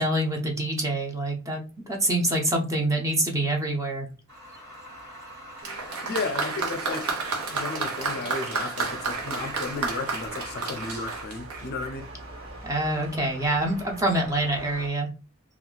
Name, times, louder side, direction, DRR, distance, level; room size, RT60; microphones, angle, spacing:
voice 1, 0.0-4.1 12.6-15.1, right 1 dB, 15° right, 0.6 m, -26 dB
sound 1, 4.3-11.3, equal, 45° right, 1.2 m, -44 dB
Applause, 5.6-12.1 13.0-13.1, right 4 dB, 85° right, 0.9 m, -31 dB
voice 2, 5.8-7.1 7.5-12.0, left 3 dB, 45° left, 0.5 m, -34 dB
sound 2, 8.9-14.9, right 2 dB, 65° right, 1.3 m, -44 dB
2.6 x 2.4 x 3.6 m
head